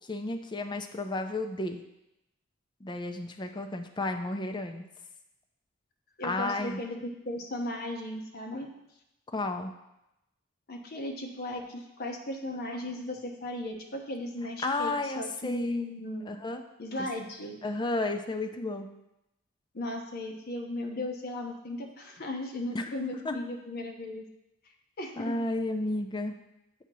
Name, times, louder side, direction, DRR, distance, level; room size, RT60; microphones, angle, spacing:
voice 1, 0.0-1.8 2.8-4.8 6.2-6.8 9.3-9.7 14.6-15.7 16.3-16.6 17.6-18.9 22.7-22.9 23.2-23.4 25.2-26.3, left 2 dB, 20° left, 5 dB, 0.5 m, -32 dB
voice 2, 6.2-8.7 10.7-16.3 16.8-17.6 19.7-24.2 25.0-25.4, left 1 dB, 50° left, 2 dB, 0.9 m, -36 dB
8.0 x 2.8 x 6.1 m, 0.88 s
head